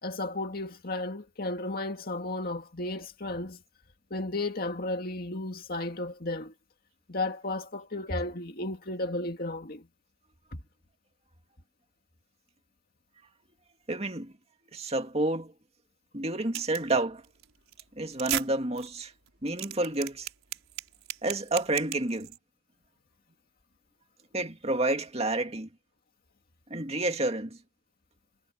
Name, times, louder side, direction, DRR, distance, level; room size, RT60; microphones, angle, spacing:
voice 1, 0.0-3.6 4.1-6.5 7.1-9.9 10.5-10.6, left 2 dB, 45° left, 2.1 m, -34 dB
voice 2, 13.9-14.3 14.7-15.5 16.1-17.2 18.0-19.1 19.4-20.3 21.2-22.3 24.3-25.7 26.7-27.6, right 2 dB, 30° right, 2.2 m, -29 dB
sound 1, 16.5-16.9 17.2-17.4 17.7-17.8 18.1-18.5 18.8-18.9 19.3-22.4, right 12 dB, 80° right, 5.3 m, -35 dB
head